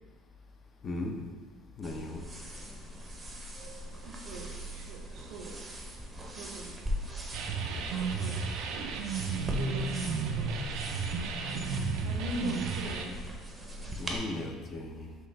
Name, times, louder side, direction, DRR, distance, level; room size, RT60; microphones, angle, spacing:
voice 1, 0.8-1.2 1.8-2.3 14.0-15.2, left 2 dB, 35° left, 3 dB, 0.5 m, -37 dB
sound 1, 1.8-14.2, equal, 15° right, 0.6 m, -41 dB
voice 2, 4.1-5.5 6.3-6.8 7.6-8.8 9.5-10.5 11.4-13.1, right 2 dB, 85° right, 0 dB, 0.8 m, -41 dB
sound 2, 7.3-13.0, right 4 dB, 70° right, 0.4 m, -33 dB
5.4 x 2.4 x 3.2 m, 1.4 s
cardioid pair, 120°, 0 cm